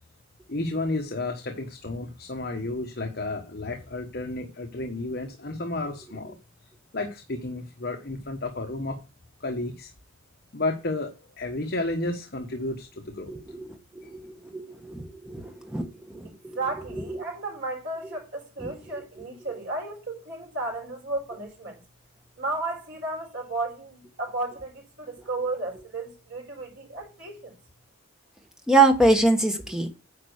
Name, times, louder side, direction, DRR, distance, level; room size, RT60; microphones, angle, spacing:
voice 1, 0.5-6.3 6.9-9.0 9.4-9.9 10.5-13.3 14.0-14.1, left 2 dB, 50° left, 1.2 m, -32 dB
voice 2, 13.3-13.7 13.9-16.3 17.1-17.2 18.6-18.7 28.7-29.9, right 2 dB, 5° right, 1.2 m, -24 dB
voice 3, 16.2-21.8 22.4-27.5, right 2 dB, 60° right, 5.2 m, -34 dB
9.9 x 5.2 x 6.5 m
head